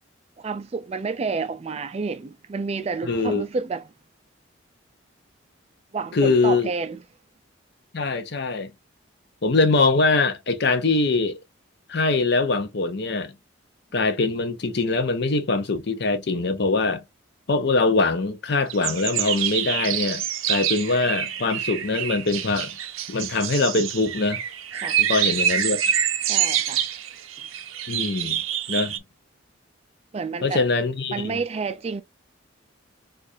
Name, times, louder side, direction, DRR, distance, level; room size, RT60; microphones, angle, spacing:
voice 1, 0.4-3.9 5.9-7.0 24.7-25.0 26.2-26.8 30.1-30.7 31.1-32.0, right 4 dB, 30° right, 0.3 m, -29 dB
voice 2, 3.1-3.4 6.1-6.7 7.9-8.7 9.4-11.4 11.9-13.3 13.9-17.0 17.5-20.2 20.5-22.8 23.1-24.4 25.0-25.8 27.9-28.4 28.7-28.9 30.4-31.4, left 3 dB, 55° left, 0.6 m, -23 dB
sound 1, 18.7-29.0, right 10 dB, 85° right, 0.5 m, -26 dB
4.5 x 2.4 x 2.5 m
head